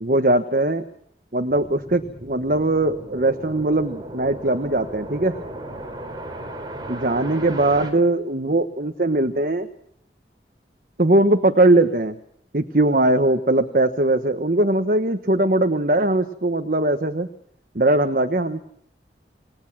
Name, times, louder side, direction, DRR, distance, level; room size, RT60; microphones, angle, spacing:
voice 1, 0.0-0.8 1.3-5.4 6.9-9.7 11.0-12.2 12.5-17.3 17.7-18.6, right 2 dB, 50° right, 7 dB, 1.2 m, -20 dB
sound 1, 1.5-7.9, right 1 dB, 25° right, 4.2 m, -36 dB
28.0 x 19.5 x 6.1 m, 0.66 s
head